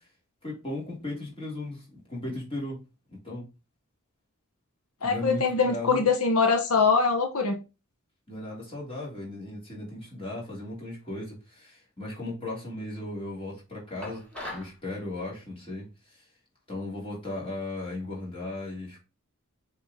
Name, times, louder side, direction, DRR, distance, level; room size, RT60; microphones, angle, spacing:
voice 1, 0.4-2.8 3.1-3.5 5.0-6.1 8.3-14.2 14.5-16.2 16.7-19.0, left 2 dB, 25° left, -4 dB, 3.1 m, -36 dB
voice 2, 5.0-7.6, left 4 dB, 85° left, 4 dB, 1.0 m, -23 dB
sound 1, 14.0-14.8, left 1 dB, 5° left, 2.4 m, -39 dB
7.0 x 3.6 x 3.7 m, 0.28 s
head